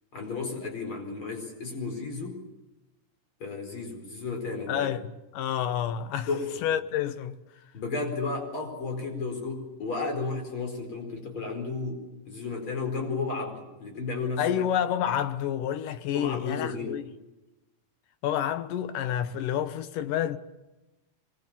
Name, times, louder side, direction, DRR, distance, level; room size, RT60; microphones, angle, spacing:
voice 1, 0.1-2.4 3.4-4.9 6.3-6.5 7.7-14.6 16.1-17.0, left 4 dB, 40° left, 5.3 m, -33 dB
voice 2, 4.7-5.0 5.3-6.3 6.6-7.4 14.4-17.0 18.2-20.4, left 10 dB, 85° left, 2.7 m, -29 dB
24.0 x 21.0 x 7.4 m
omnidirectional pair, 3.7 m